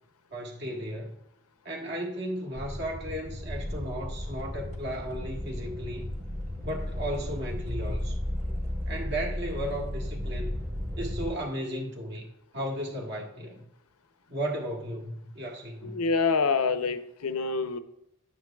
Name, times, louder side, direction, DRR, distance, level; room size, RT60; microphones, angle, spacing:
voice 1, 0.3-1.1 1.6-6.1 6.6-8.2 8.9-10.5 11.0-12.3 12.5-13.7 14.3-16.0, equal, 50° right, 1.5 m, -35 dB
sound 1, 2.5-11.3, left 1 dB, 30° right, 1.3 m, -34 dB
voice 2, 15.8-17.8, left 4 dB, 90° left, 0.7 m, -26 dB
11.5 x 9.3 x 2.3 m
head